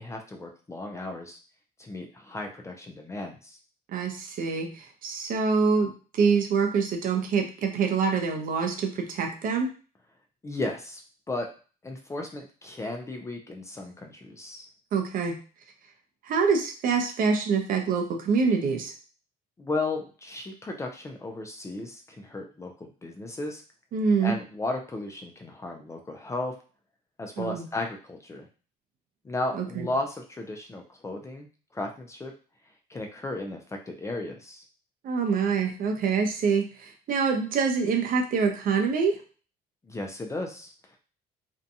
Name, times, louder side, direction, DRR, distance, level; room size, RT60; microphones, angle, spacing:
voice 1, 0.0-1.4 1.8-3.6 10.4-11.0 11.3-11.5 11.8-14.7 19.6-23.6 24.2-26.5 27.2-28.5 29.2-31.5 31.7-32.3 32.9-33.6 33.9-34.6 39.8-41.0, left 2 dB, 15° left, 2 dB, 0.4 m, -35 dB
voice 2, 3.9-9.7 14.9-15.4 16.2-18.9 23.9-24.4 27.4-27.7 29.5-29.9 35.0-39.2, right 5 dB, 55° right, 3 dB, 0.6 m, -25 dB
2.6 x 2.2 x 2.6 m, 0.37 s
cardioid pair, 110°, 17 cm